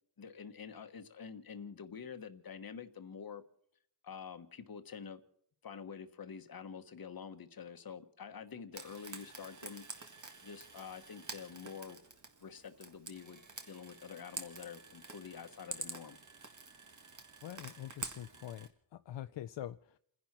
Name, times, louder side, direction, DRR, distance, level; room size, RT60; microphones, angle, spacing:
voice 1, 0.2-3.4 4.0-5.2 5.6-10.1 10.4-12.0 12.4-13.4 13.6-16.2, left 6 dB, 55° left, 1.3 m, -47 dB
Frying (food), 8.7-18.7, right 4 dB, 45° right, 1.7 m, -48 dB
voice 2, 17.4-20.0, left 12 dB, 80° left, 0.6 m, -45 dB
30.0 x 11.0 x 4.3 m
wide cardioid pair, 130°, 42 cm